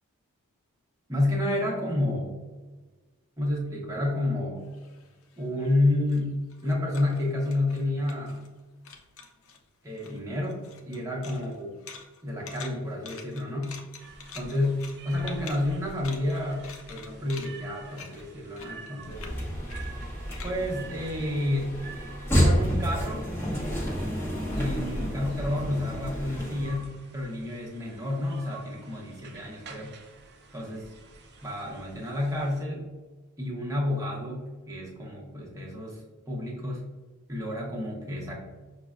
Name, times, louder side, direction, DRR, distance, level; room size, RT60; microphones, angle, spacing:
voice 1, 1.1-2.4 3.4-4.7 5.4-8.4 9.8-11.7 12.2-13.8 14.3-14.8 15.0-19.3 20.4-22.0 22.3-23.3 24.5-29.9 30.5-30.9 31.4-32.9 33.4-36.9 37.3-38.4, left 1 dB, 15° right, -3 dB, 0.9 m, -30 dB
sound 1, 4.6-8.6 8.8-9.6 9.9-21.8, left 5 dB, 65° left, 0.6 m, -47 dB
sound 2, 14.0-32.6, right 4 dB, 45° right, 0.5 m, -49 dB
sound 3, 19.0-26.9, equal, 10° left, 0.8 m, -30 dB
6.0 x 2.1 x 2.4 m, 1.3 s
head